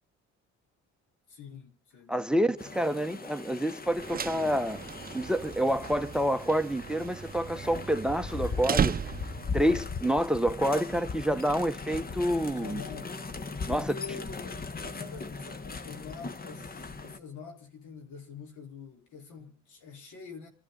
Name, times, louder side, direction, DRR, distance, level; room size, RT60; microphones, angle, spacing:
voice 1, 1.3-2.5 12.5-13.3 13.7-14.6 14.9-20.5, left 5 dB, 80° left, 4.4 m, -46 dB
voice 2, 2.1-4.8 5.1-9.0 9.5-12.8 13.7-13.9, equal, 5° right, 1.1 m, -28 dB
sound 1, 2.6-17.2, left 4 dB, 30° left, 1.4 m, -39 dB
sound 2, 3.9-9.6, right 7 dB, 30° right, 0.7 m, -35 dB
28.0 x 12.0 x 4.0 m
cardioid pair, 90°, 30 cm